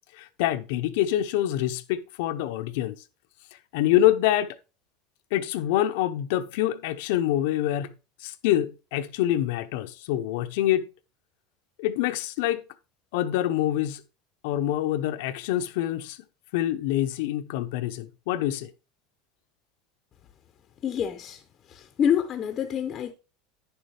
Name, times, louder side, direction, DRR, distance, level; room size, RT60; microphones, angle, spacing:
voice 1, 0.1-3.0 3.7-4.6 5.3-7.9 8.2-10.8 11.8-12.6 13.1-14.0 14.4-16.2 16.5-18.7, left 12 dB, 70° left, 0.7 m, -26 dB
voice 2, 20.8-21.4 21.7-23.1, left 8 dB, 30° left, 0.7 m, -27 dB
10.0 x 6.9 x 3.3 m
cardioid pair, 160°, 0 cm